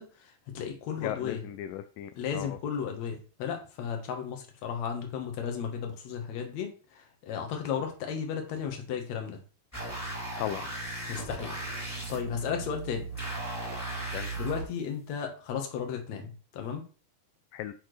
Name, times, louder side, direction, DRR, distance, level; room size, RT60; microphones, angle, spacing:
voice 1, 0.0-1.4 2.2-9.4 11.1-11.6 11.9-13.1 14.4-16.8, left 7 dB, 60° left, 4 dB, 2.3 m, -34 dB
voice 2, 1.0-2.5 10.4-10.7 14.1-14.3 17.5-17.7, left 13 dB, 80° left, 10 dB, 2.0 m, -36 dB
sound 1, 9.7-14.6, right 2 dB, 5° left, 2.1 m, -36 dB
10.5 x 4.4 x 3.3 m, 0.38 s
omnidirectional pair, 4.1 m